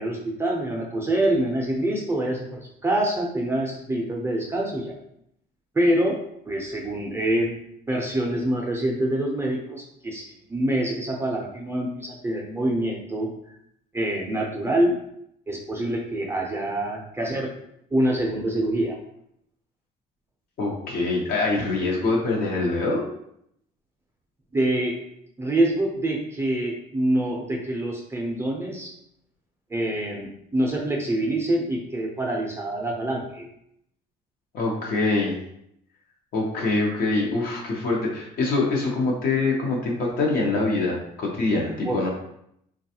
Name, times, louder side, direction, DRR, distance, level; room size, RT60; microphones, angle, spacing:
voice 1, 0.0-4.9 5.7-6.2 6.5-7.5 7.9-13.3 13.9-15.0 15.5-17.5 17.9-19.0 24.5-25.0 25.4-28.9 29.7-33.5 41.8-42.1, right 1 dB, 15° right, -2 dB, 0.5 m, -25 dB
voice 2, 20.6-23.0 34.5-35.4 36.3-42.1, left 3 dB, 60° left, -2 dB, 0.8 m, -24 dB
3.2 x 2.3 x 2.8 m, 0.74 s
cardioid pair, 110°, 17 cm